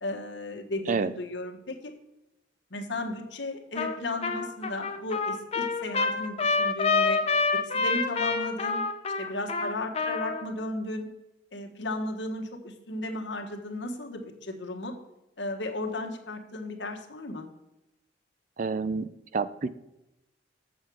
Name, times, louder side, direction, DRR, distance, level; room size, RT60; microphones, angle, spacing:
voice 1, 0.0-1.9 2.7-7.2 7.5-8.8 9.2-11.1 11.5-15.0 15.4-17.5, left 2 dB, 75° left, 4 dB, 1.3 m, -35 dB
Trumpet, 3.8-4.0 4.2-10.4, left 4 dB, 35° left, 0.7 m, -27 dB
voice 2, 18.6-19.8, right 4 dB, 45° right, 14 dB, 0.4 m, -29 dB
7.4 x 7.2 x 6.2 m, 0.93 s
head